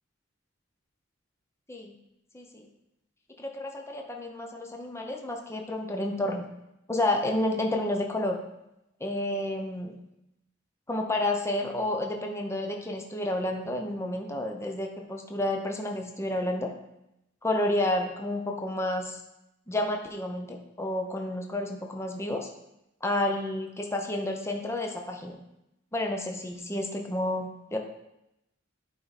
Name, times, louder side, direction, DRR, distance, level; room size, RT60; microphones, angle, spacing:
voice 1, 2.3-2.7 3.4-6.4 6.9-8.4 9.0-9.9 10.9-16.7 17.4-19.2 19.7-22.5 23.0-25.4 25.9-27.8, left 1 dB, 15° left, 2 dB, 0.6 m, -30 dB
8.8 x 3.7 x 4.1 m, 0.85 s
head